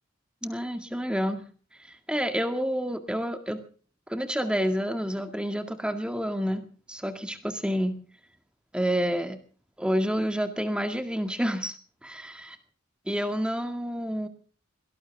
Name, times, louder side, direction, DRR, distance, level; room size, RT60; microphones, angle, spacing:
voice 1, 0.4-1.4 1.9-3.6 4.1-8.0 8.7-9.4 9.8-11.8 12.0-12.5 13.1-14.3, equal, 5° right, 7 dB, 2.0 m, -29 dB
22.0 x 18.5 x 3.6 m, 0.42 s
head